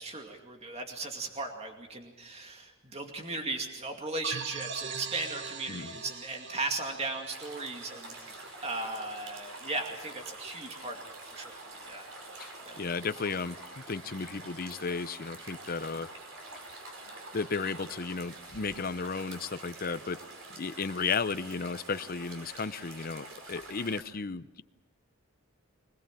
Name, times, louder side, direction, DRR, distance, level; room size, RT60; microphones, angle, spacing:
voice 1, 0.0-11.0 11.3-11.6 11.9-12.1 12.6-12.8, right 2 dB, 30° right, 3 dB, 2.4 m, -37 dB
sound 1, 4.2-8.7, right 6 dB, 55° right, 1.2 m, -42 dB
sound 2, 7.3-24.0, right 2 dB, 70° right, 5.1 m, -46 dB
voice 2, 12.8-16.1 17.3-20.2 20.6-24.6, left 4 dB, 45° left, 13 dB, 0.7 m, -34 dB
25.0 x 19.5 x 7.6 m, 1.0 s
head